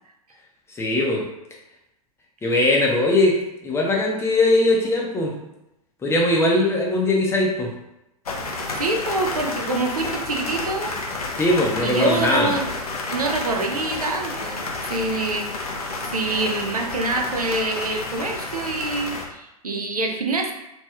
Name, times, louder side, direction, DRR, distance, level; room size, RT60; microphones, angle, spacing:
voice 1, 0.8-1.2 2.4-3.4 3.6-5.3 6.0-7.7 11.4-12.5, left 2 dB, 15° left, -1 dB, 0.6 m, -20 dB
sound 1, 8.3-19.3, left 3 dB, 80° left, 0.6 m, -30 dB
voice 2, 8.7-10.9 11.8-12.7 13.1-15.5 16.1-20.5, right 2 dB, 85° right, 3 dB, 0.5 m, -26 dB
3.0 x 2.9 x 2.3 m, 0.87 s
figure-of-eight pair, 100°, 19 cm